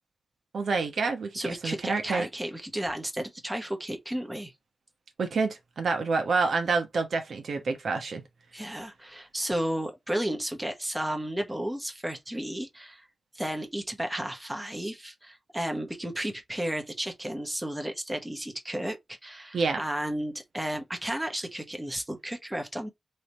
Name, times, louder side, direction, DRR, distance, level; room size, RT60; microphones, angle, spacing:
voice 1, 0.5-2.3 5.2-8.2 19.5-19.8, right 4 dB, 90° right, 1.0 m, -28 dB
voice 2, 1.3-4.5 8.5-13.0 13.3-22.9, right 1 dB, 10° right, 1.0 m, -33 dB
3.3 x 2.8 x 4.1 m
wide cardioid pair, 120°, 0 cm